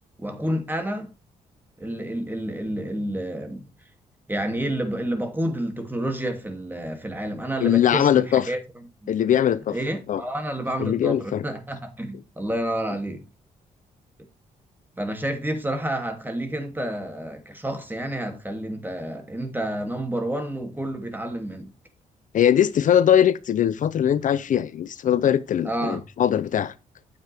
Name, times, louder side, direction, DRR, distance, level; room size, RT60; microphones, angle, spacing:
voice 1, 0.2-1.1 1.8-3.7 4.3-8.6 9.0-9.1 9.7-13.2 15.0-21.7 25.6-26.0, right 1 dB, 15° right, 2.7 m, -29 dB
voice 2, 7.6-8.4 9.1-9.8 10.1-10.2 10.8-11.4 22.3-26.7, left 10 dB, 60° left, 0.6 m, -21 dB
9.5 x 7.3 x 3.5 m
cardioid pair, 75°, 15 cm